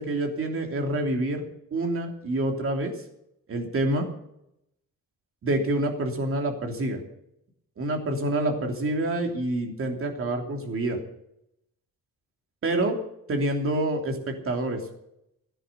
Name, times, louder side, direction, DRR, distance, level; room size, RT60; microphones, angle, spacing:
voice 1, 0.0-1.4 1.7-2.9 3.5-4.1 5.4-7.0 7.8-11.0 12.6-13.0 13.3-14.8, right 1 dB, 45° right, 3 dB, 3.1 m, -27 dB
15.0 x 10.5 x 6.8 m, 0.80 s
cardioid pair, 130°, 31 cm